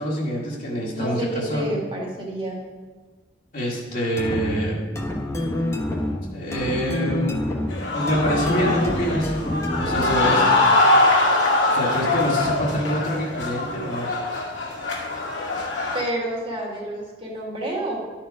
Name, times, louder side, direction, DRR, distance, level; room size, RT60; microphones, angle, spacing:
voice 1, 0.0-1.7 3.5-4.8 6.3-7.4 7.9-9.3 9.8-10.5 11.7-14.1, equal, 50° left, -5 dB, 1.6 m, -26 dB
voice 2, 0.9-2.6 15.9-18.1, right 1 dB, 30° right, -2 dB, 1.9 m, -29 dB
sound 1, 4.2-10.6, left 1 dB, 15° left, 1.1 m, -27 dB
sound 2, 7.7-16.0, left 2 dB, 90° left, 1.9 m, -22 dB
11.5 x 4.5 x 4.8 m, 1.3 s
head